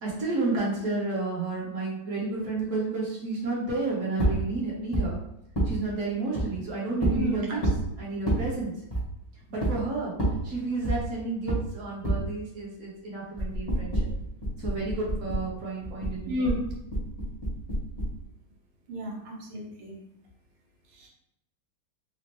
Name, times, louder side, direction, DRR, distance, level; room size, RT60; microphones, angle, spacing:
voice 1, 0.0-5.2 5.6-7.6 8.0-8.7 9.5-10.1 10.4-13.9 14.6-16.5, right 3 dB, 50° right, -5 dB, 1.1 m, -31 dB
sound 1, 4.2-4.4 4.9-5.1 5.5-5.7 6.4-6.5 7.0-7.2 7.6-7.8 8.3-8.4 8.9-9.0 9.6-9.7 10.2-10.4 10.8-11.0 11.5-11.6 12.0-12.2 13.4-15.5 15.8-18.2, right 1 dB, 25° left, 0.6 m, -27 dB
voice 2, 7.1-7.6 16.3-16.5 18.9-20.0 21.0-21.1, left 1 dB, 80° right, -2 dB, 1.7 m, -32 dB
4.1 x 2.0 x 3.0 m, 0.80 s
omnidirectional pair, 2.3 m